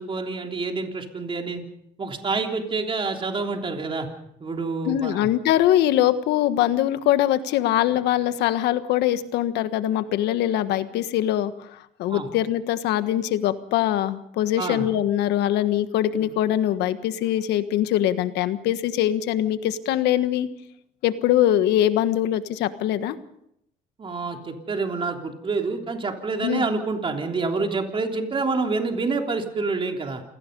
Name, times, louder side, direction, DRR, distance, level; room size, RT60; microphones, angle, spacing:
voice 1, 0.0-1.6 2.0-4.1 4.4-5.3 12.1-12.3 14.6-14.9 16.1-16.3 24.0-30.2, right 3 dB, 30° right, 3 dB, 3.4 m, -27 dB
voice 2, 4.8-20.5 21.0-23.1 26.4-26.6, left 12 dB, 85° left, 11 dB, 1.4 m, -22 dB
28.0 x 18.5 x 5.4 m, 0.76 s
cardioid pair, 110°, 17 cm